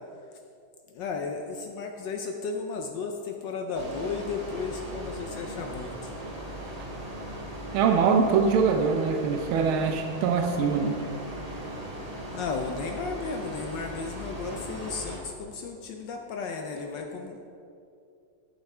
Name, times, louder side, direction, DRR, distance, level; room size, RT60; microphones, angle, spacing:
voice 1, 0.9-5.9 12.3-17.4, left 4 dB, 70° left, 3 dB, 1.2 m, -34 dB
sound 1, 3.7-15.2, right 1 dB, 25° right, 0.9 m, -38 dB
voice 2, 7.7-10.9, right 5 dB, 90° right, 4 dB, 1.5 m, -23 dB
11.5 x 5.7 x 4.3 m, 2.5 s
omnidirectional pair, 2.2 m